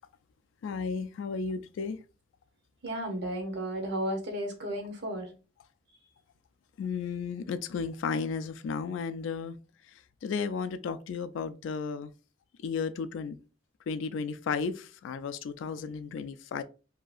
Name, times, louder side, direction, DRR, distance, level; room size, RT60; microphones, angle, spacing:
voice 1, 0.6-2.0 6.8-9.6 10.2-12.1 12.6-13.4 13.9-16.6, left 5 dB, 80° left, 0.3 m, -33 dB
voice 2, 2.8-5.3, right 1 dB, 60° right, 0.8 m, -33 dB
2.7 x 2.3 x 2.4 m
head